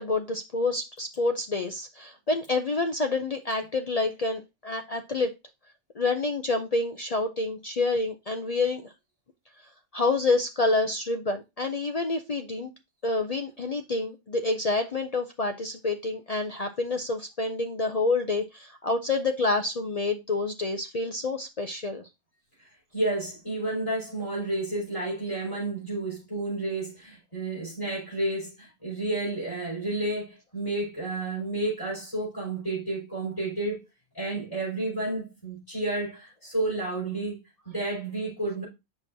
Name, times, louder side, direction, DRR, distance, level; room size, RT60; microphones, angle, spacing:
voice 1, 0.0-5.3 6.0-8.9 9.9-12.7 13.0-22.0, left 3 dB, 55° left, 0.4 m, -28 dB
voice 2, 22.6-33.8 34.1-37.4 37.6-38.6, right 2 dB, 25° left, 5.3 m, -31 dB
7.7 x 5.9 x 2.7 m
omnidirectional pair, 1.4 m